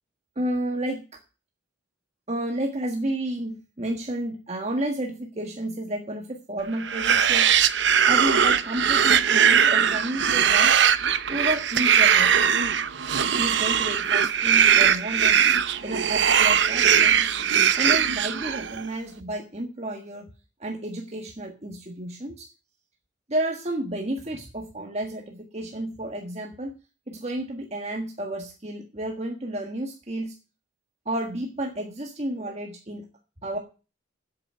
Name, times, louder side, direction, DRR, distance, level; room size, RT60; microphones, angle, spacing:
voice 1, 0.3-1.2 2.3-7.5 8.1-10.8 11.3-12.3 13.3-15.4 15.8-17.4 17.8-20.3 20.6-22.5 23.3-26.7 27.1-30.3 31.0-33.0 33.4-33.6, right 1 dB, 35° right, 2 dB, 1.5 m, -31 dB
sound 1, 6.8-18.8, right 8 dB, 65° right, 0.8 m, -20 dB
8.6 x 8.1 x 8.9 m, 0.33 s
head